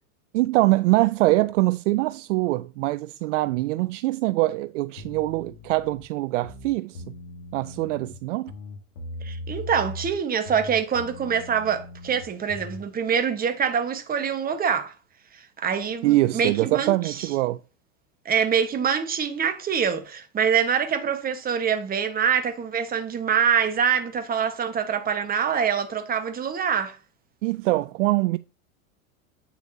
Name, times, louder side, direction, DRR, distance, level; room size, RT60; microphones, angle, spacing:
voice 1, 0.3-7.0 7.5-8.5 16.0-17.6 27.4-28.4, right 19 dB, 60° right, 0.5 m, -23 dB
sound 1, 5.0-6.0 6.4-8.1 8.5-10.2 10.4-12.8, left 2 dB, 75° left, 2.5 m, -39 dB
voice 2, 9.2-14.9 15.6-17.3 18.2-27.0, right 7 dB, 20° right, 1.2 m, -25 dB
8.7 x 7.0 x 2.7 m
hypercardioid pair, 110°, 42 cm